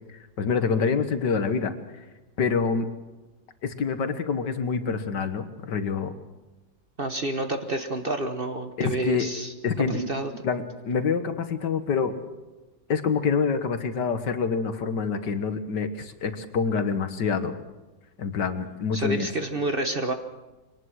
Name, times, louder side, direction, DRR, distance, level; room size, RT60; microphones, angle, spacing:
voice 1, 0.4-2.1 2.4-2.9 3.6-6.2 8.8-9.3 9.6-10.1 10.4-12.2 12.9-17.6 18.2-19.3, left 5 dB, 70° left, 9 dB, 2.0 m, -26 dB
voice 2, 7.0-10.3 18.9-20.1, right 2 dB, 35° right, 6 dB, 1.1 m, -29 dB
24.0 x 19.0 x 6.4 m, 1.1 s
omnidirectional pair, 1.9 m